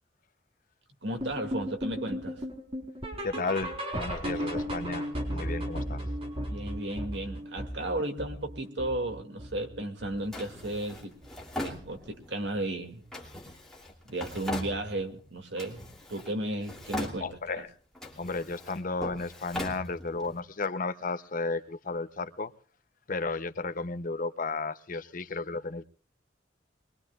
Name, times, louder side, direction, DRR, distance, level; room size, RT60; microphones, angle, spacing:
voice 1, 1.0-2.4 6.5-11.1 11.6-13.0 14.0-15.8 16.1-17.6, right 1 dB, 90° right, 5 dB, 2.4 m, -34 dB
sound 1, 1.2-10.3 10.6-10.9 11.2-11.3 11.8-11.9 12.4-12.5, equal, 35° right, 4.1 m, -36 dB
voice 2, 3.2-5.1 5.3-6.0 17.2-17.7 18.2-22.5 23.1-25.9, left 3 dB, 50° left, 11 dB, 0.8 m, -33 dB
Drawer open or close, 10.3-12.4 13.1-15.2 15.6-16.3 16.6-17.6 17.9-20.4, left 1 dB, 5° left, 3.0 m, -40 dB
23.5 x 21.5 x 2.4 m, 0.42 s
head